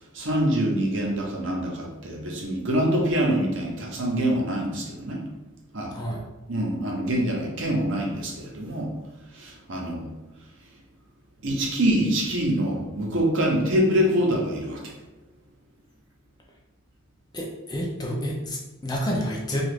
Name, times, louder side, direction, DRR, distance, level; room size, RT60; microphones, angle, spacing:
voice 1, 0.1-5.2 5.7-5.9 6.5-8.9 9.3-10.1 11.4-14.9, equal, 60° right, -1 dB, 0.7 m, -25 dB
voice 2, 17.3-19.6, equal, 20° left, -1 dB, 0.4 m, -29 dB
2.8 x 2.4 x 3.3 m, 1.0 s
head